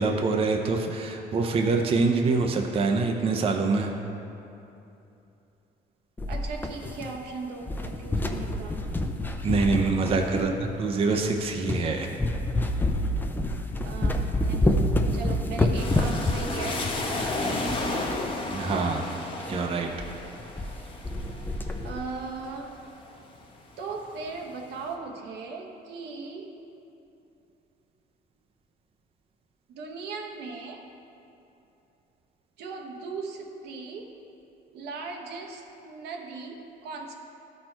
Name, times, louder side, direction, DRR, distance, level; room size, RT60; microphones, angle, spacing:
voice 1, 0.0-3.9 9.4-10.5 10.8-12.1 18.5-19.1 19.5-19.9, right 3 dB, 35° right, 3 dB, 0.6 m, -25 dB
sound 1, 6.2-7.3 7.6-10.6 11.2-11.3 11.7-11.9 12.2-18.3 18.5-18.6 18.9-19.0 19.4-19.6 20.0-20.1 20.4-20.8 21.0-22.0, left 1 dB, 10° left, 0.5 m, -27 dB
voice 2, 6.3-8.9 10.3-10.6 13.8-16.8 21.8-22.7 23.8-26.5 29.7-30.8 32.6-34.1 34.7-37.1, right 4 dB, 80° right, 2 dB, 1.0 m, -38 dB
sound 2, 15.8-23.4 23.9-24.7, left 2 dB, 30° left, 1.0 m, -33 dB
11.5 x 4.4 x 4.4 m, 2.8 s
cardioid pair, 110°, 17 cm